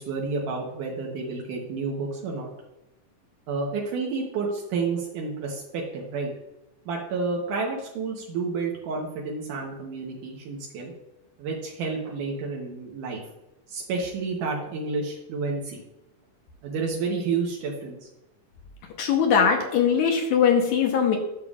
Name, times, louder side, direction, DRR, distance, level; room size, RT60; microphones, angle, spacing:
voice 1, 0.0-2.5 3.5-6.3 6.9-10.9 11.4-13.2 13.7-15.8 16.6-18.1, right 4 dB, 80° right, -1 dB, 2.5 m, -30 dB
voice 2, 19.0-21.2, left 7 dB, 70° left, 2 dB, 2.2 m, -21 dB
11.0 x 6.7 x 2.4 m, 0.91 s
omnidirectional pair, 3.7 m